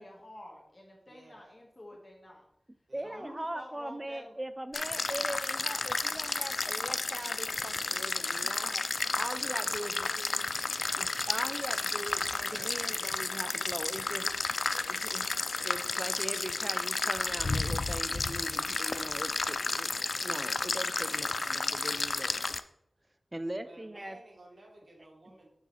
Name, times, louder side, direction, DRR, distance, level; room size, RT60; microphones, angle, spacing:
voice 1, 0.0-2.4 3.0-4.4 9.5-10.4, left 1 dB, 30° left, -2 dB, 1.4 m, -49 dB
voice 2, 1.0-1.5 2.9-3.4 12.4-13.0 23.6-25.5, right 1 dB, 70° right, 0 dB, 1.6 m, -54 dB
voice 3, 2.9-8.8 9.2-10.1 11.0-14.3 14.7-15.3 15.6-22.3 23.3-24.2, right 1 dB, 25° right, 10 dB, 0.5 m, -40 dB
sound 1, 4.7-22.6, left 3 dB, 65° left, 0.3 m, -32 dB
4.8 x 3.9 x 5.7 m, 0.76 s
wide cardioid pair, 60°, 0 cm